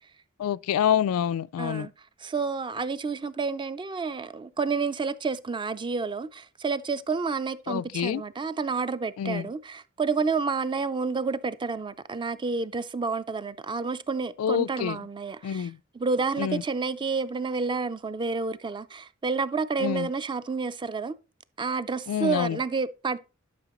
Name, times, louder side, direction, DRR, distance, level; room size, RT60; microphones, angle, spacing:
voice 1, 0.4-1.9 7.7-8.2 9.2-9.5 14.4-15.1 15.4-15.8 16.4-16.6 19.8-20.1 22.1-22.6, left 9 dB, 85° left, 0.3 m, -27 dB
voice 2, 1.6-1.9 2.2-15.7 15.9-21.1 21.6-23.2, right 4 dB, 20° right, 0.4 m, -29 dB
11.0 x 5.7 x 3.0 m
head